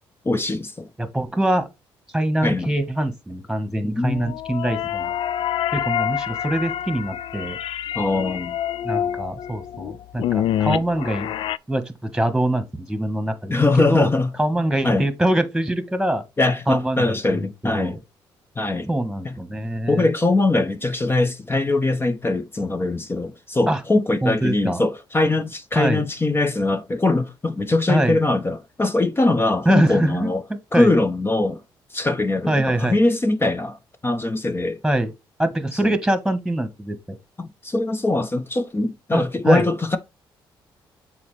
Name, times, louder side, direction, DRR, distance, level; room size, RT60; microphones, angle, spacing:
voice 1, 0.2-0.9 2.4-2.7 3.8-4.3 7.9-8.6 13.5-14.3 14.8-15.1 16.4-18.0 18.6-18.9 19.2-19.3 19.9-30.4 30.7-31.6 31.9-34.8 35.8-35.9 37.4-40.0, left 2 dB, 25° left, 0.8 m, -21 dB
voice 2, 1.0-1.7 2.1-5.1 5.7-7.6 8.8-11.3 11.7-14.1 14.4-16.2 16.7-18.0 18.9-20.1 23.7-23.8 24.2-24.8 25.7-26.0 27.9-28.2 29.6-30.3 30.7-30.9 32.5-33.0 34.8-35.1 35.4-37.2 39.1-39.7, right 1 dB, 5° right, 1.6 m, -24 dB
sound 1, 4.1-11.6, left 10 dB, 70° left, 0.4 m, -27 dB
6.9 x 4.3 x 3.4 m
supercardioid pair, 65°, 9 cm